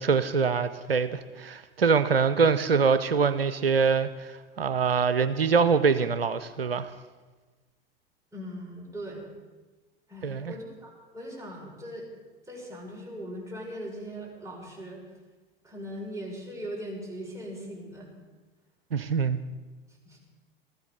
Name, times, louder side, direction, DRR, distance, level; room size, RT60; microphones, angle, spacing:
voice 1, 0.0-6.9 10.2-10.5 18.9-19.4, right 5 dB, 90° right, 12 dB, 0.6 m, -24 dB
voice 2, 8.3-9.3 10.1-12.1 12.5-15.0 15.6-18.1 20.0-20.2, equal, 10° right, -3 dB, 6.0 m, -39 dB
20.0 x 14.5 x 4.1 m, 1.3 s
figure-of-eight pair, 80°, 29 cm